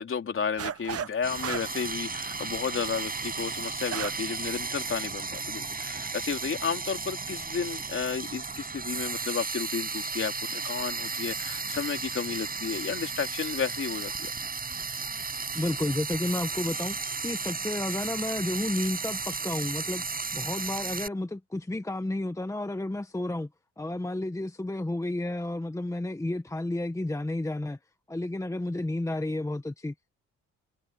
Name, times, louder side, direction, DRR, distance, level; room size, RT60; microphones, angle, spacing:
voice 1, 0.0-14.3, left 6 dB, 45° left, 3.5 m, -32 dB
sound 1, 0.6-1.1 1.4-4.3 4.7-4.8 5.3-5.7, right 9 dB, 50° right, 1.2 m, -35 dB
Frying (food), 1.2-21.1, right 4 dB, 30° right, 7.9 m, -34 dB
voice 2, 15.5-20.0 20.3-23.5 23.8-27.8 28.1-30.1, left 1 dB, 10° left, 1.4 m, -31 dB
cardioid pair, 90°, 30 cm